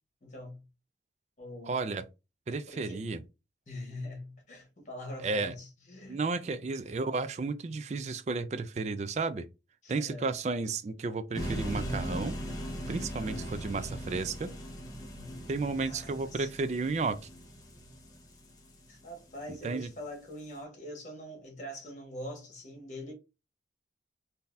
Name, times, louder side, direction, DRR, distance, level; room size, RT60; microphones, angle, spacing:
voice 1, 0.2-0.6 1.4-1.8 2.7-3.0 3.7-6.6 9.8-10.3 13.1-13.5 15.1-16.5 18.9-23.1, left 1 dB, 40° left, 1.4 m, -44 dB
voice 2, 1.6-2.0 2.5-3.2 5.2-5.5 6.1-9.5 9.9-12.4 12.9-14.5 15.5-17.2 19.5-19.9, right 3 dB, 40° right, 0.3 m, -33 dB
sound 1, 11.3-19.4, equal, 20° left, 0.7 m, -39 dB
3.8 x 2.7 x 2.6 m
head